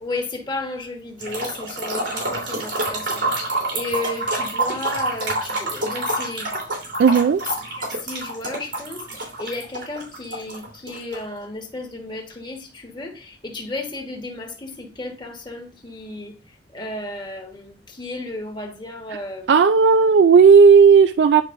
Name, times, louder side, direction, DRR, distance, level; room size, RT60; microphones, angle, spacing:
voice 1, 0.0-3.3 3.7-6.5 7.8-9.0 9.4-16.3 16.7-19.5, left 2 dB, 25° left, 1.3 m, -33 dB
sound 1, 1.2-11.2, right 2 dB, 90° right, 3.3 m, -27 dB
voice 2, 7.0-7.4 19.5-21.4, right 5 dB, 70° right, 0.3 m, -12 dB
10.0 x 4.6 x 2.6 m
head